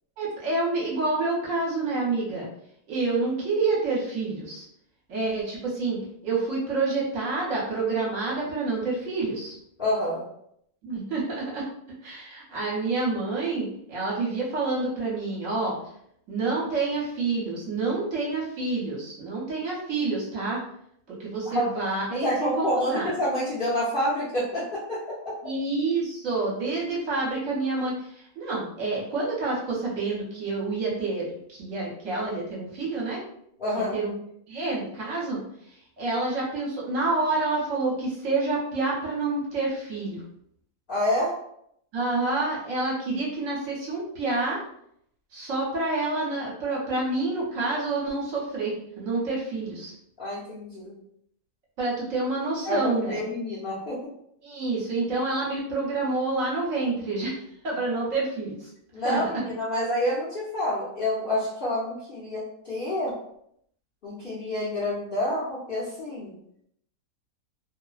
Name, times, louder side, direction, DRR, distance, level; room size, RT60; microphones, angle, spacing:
voice 1, 0.2-2.5 2.9-4.6 5.1-9.6 10.8-11.7 12.0-15.8 16.3-20.6 21.1-23.1 25.4-33.2 33.7-34.1 34.5-35.4 36.0-40.2 41.9-44.6 45.3-49.9 51.8-53.2 54.4-57.4 57.6-58.6 59.0-59.2, right 3 dB, 65° right, -5 dB, 1.1 m, -28 dB
voice 2, 9.8-10.2 21.5-21.7 22.2-25.0 33.6-34.0 40.9-41.3 50.2-50.9 52.6-54.0 58.9-63.1 64.0-66.3, left 1 dB, 50° left, -9 dB, 0.7 m, -28 dB
2.6 x 2.0 x 2.3 m, 0.71 s
omnidirectional pair, 1.6 m